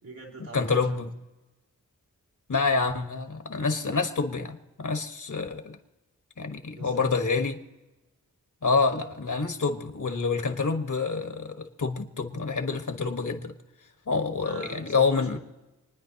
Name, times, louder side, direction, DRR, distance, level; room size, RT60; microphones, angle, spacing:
voice 1, 0.0-1.1 6.7-7.1 14.4-15.4, right 2 dB, 90° right, -6 dB, 3.5 m, -43 dB
voice 2, 0.5-1.1 2.5-5.8 6.4-7.6 8.6-13.5 14.1-15.4, left 4 dB, 65° left, 6 dB, 1.5 m, -27 dB
29.5 x 9.9 x 2.9 m, 1.1 s
wide cardioid pair, 60°, 33 cm